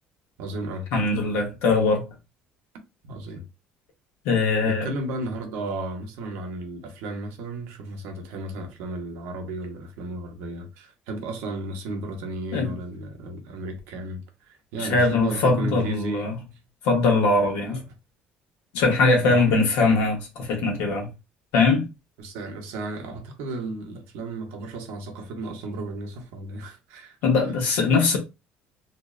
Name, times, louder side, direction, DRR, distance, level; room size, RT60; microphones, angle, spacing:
voice 1, 0.4-0.9 3.0-3.5 4.6-16.3 17.7-17.8 19.3-19.6 22.2-27.2, right 2 dB, 85° right, 0.7 m, -34 dB
voice 2, 0.9-2.1 4.2-4.9 12.5-12.7 14.8-16.4 16.8-17.8 18.7-21.1 21.5-21.9 27.2-28.2, left 3 dB, 75° left, 1.0 m, -21 dB
2.6 x 2.0 x 2.4 m
cardioid pair, 175°, 4 cm